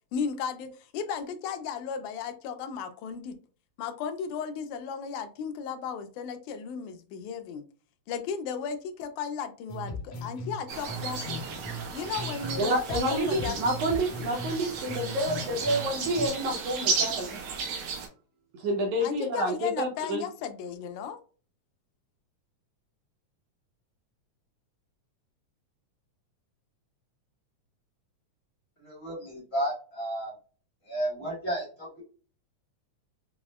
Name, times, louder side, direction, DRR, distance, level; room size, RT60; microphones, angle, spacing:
voice 1, 0.1-3.4 3.8-7.7 8.1-11.4 11.9-13.6 15.1-15.2 19.0-21.2, left 6 dB, 85° left, 2.0 m, -35 dB
sound 1, 9.7-12.6 12.9-16.3, left 1 dB, 60° left, 1.3 m, -38 dB
sound 2, 10.7-18.1, right 5 dB, 85° right, 2.4 m, -34 dB
voice 2, 12.6-17.4 18.5-20.2, right 1 dB, 70° right, 1.7 m, -29 dB
voice 3, 28.8-30.3 30.9-32.0, right 1 dB, 30° left, 1.2 m, -32 dB
6.0 x 2.0 x 2.3 m
omnidirectional pair, 3.4 m